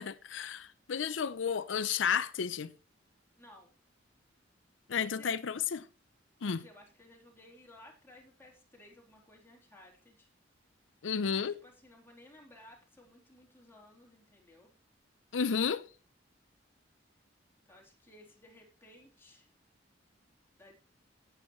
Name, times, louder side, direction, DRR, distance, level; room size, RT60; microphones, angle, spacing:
voice 1, 0.0-2.7 4.9-5.9 6.4-6.6 11.0-11.6 15.3-15.9, left 6 dB, 90° left, 0.6 m, -32 dB
voice 2, 3.4-3.7 5.0-5.4 6.4-10.3 11.2-14.7 17.7-19.5 20.5-20.8, left 1 dB, 15° left, 3.4 m, -57 dB
17.5 x 8.0 x 3.1 m
head